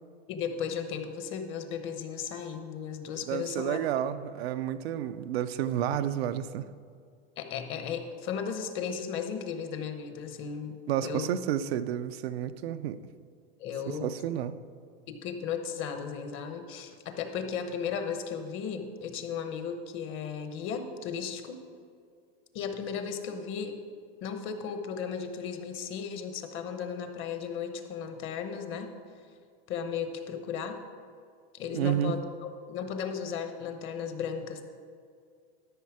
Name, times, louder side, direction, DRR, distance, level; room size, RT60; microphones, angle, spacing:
voice 1, 0.3-3.8 7.4-10.8 11.0-11.3 13.6-14.1 15.1-21.6 22.5-23.7 24.2-28.9 29.7-30.8 31.5-34.6, left 7 dB, 40° left, 1.0 m, -35 dB
voice 2, 3.3-6.6 10.9-13.0 14.0-14.6 31.7-32.1, right 10 dB, 90° right, 0.6 m, -30 dB
12.5 x 5.6 x 4.8 m
supercardioid pair, 130°, 30 cm